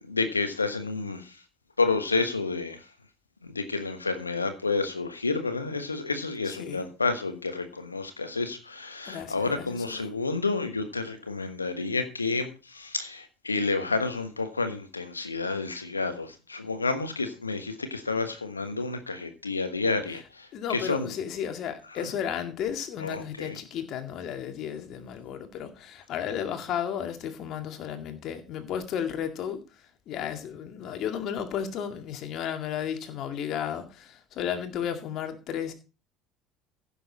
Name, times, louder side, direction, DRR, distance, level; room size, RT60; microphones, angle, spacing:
voice 1, 0.1-1.4 1.8-2.8 3.4-21.1 22.0-22.1 23.0-23.6, left 3 dB, 90° left, 1.3 m, -30 dB
voice 2, 6.4-6.8 9.1-10.1 20.5-35.7, left 8 dB, 50° left, 2.1 m, -33 dB
15.5 x 7.1 x 4.1 m
figure-of-eight pair, 60°, 0 cm